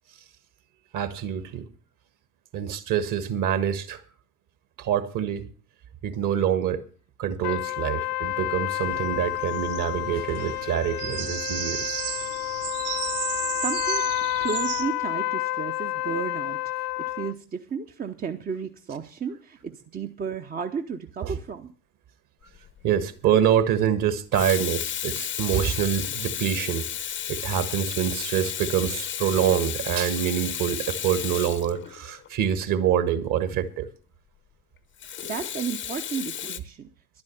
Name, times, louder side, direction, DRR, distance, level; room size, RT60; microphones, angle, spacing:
voice 1, 0.9-1.6 2.5-4.0 4.8-5.5 6.0-6.8 7.2-12.0 21.2-21.4 22.8-26.9 27.3-33.9, right 9 dB, 40° right, 1.5 m, -26 dB
sound 1, 7.4-17.3, left 16 dB, 70° left, 0.7 m, -30 dB
sound 2, 8.8-14.8, right 10 dB, 65° right, 2.6 m, -34 dB
voice 2, 13.6-21.7 35.0-36.9, right 6 dB, 20° right, 0.8 m, -33 dB
Water tap faucet / Sink (filling or washing), 22.5-22.8 24.1-32.3 35.0-36.6, left 9 dB, 25° left, 0.8 m, -33 dB
11.0 x 9.7 x 7.0 m
figure-of-eight pair, 65°, 48 cm